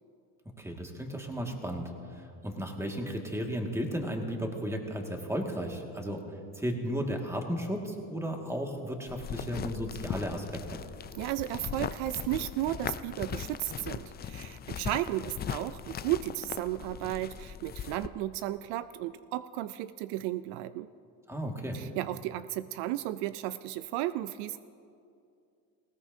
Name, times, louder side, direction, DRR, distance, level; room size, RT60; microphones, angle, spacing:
voice 1, 0.6-6.2 6.6-10.8 21.3-21.8, equal, 5° right, 2 dB, 1.9 m, -34 dB
sound 1, 9.1-18.1, left 9 dB, 25° left, 0.4 m, -39 dB
voice 2, 11.2-20.9 21.7-24.6, right 14 dB, 75° right, 14 dB, 0.5 m, -34 dB
19.0 x 17.0 x 2.7 m, 2.5 s
supercardioid pair, 90°, 40 cm